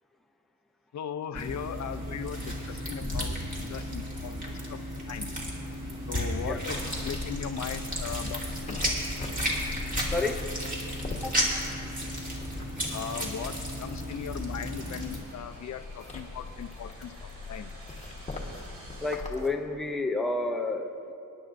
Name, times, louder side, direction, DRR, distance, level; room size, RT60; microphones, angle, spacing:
voice 1, 0.9-5.3 6.1-8.4 8.7-8.8 12.9-17.7, left 8 dB, 55° left, 10 dB, 0.4 m, -38 dB
sound 1, 1.3-15.2, equal, 25° right, 2.2 m, -33 dB
sound 2, 5.3-19.2, right 1 dB, 60° right, 2.9 m, -54 dB
sound 3, 6.4-19.5, left 3 dB, 20° left, 1.2 m, -42 dB
voice 2, 10.1-10.5 11.2-11.4 19.0-21.1, left 2 dB, ahead, 3 dB, 0.5 m, -30 dB
25.5 x 10.5 x 2.5 m, 2.8 s
wide cardioid pair, 165°, 34 cm